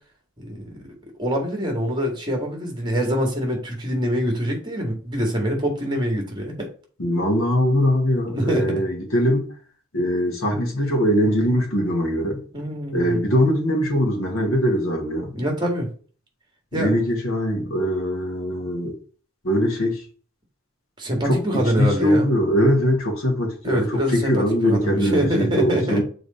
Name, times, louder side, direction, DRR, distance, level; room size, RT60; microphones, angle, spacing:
voice 1, 0.4-0.7 1.2-6.7 8.3-8.6 12.5-13.2 15.3-15.9 16.7-16.9 21.0-22.3 23.6-26.0, equal, 20° right, 1.9 m, -24 dB
voice 2, 7.0-9.5 9.9-12.4 12.9-15.3 16.7-18.9 19.4-20.0 21.2-26.0, equal, 70° left, 1.9 m, -21 dB
6.6 x 3.8 x 4.3 m
head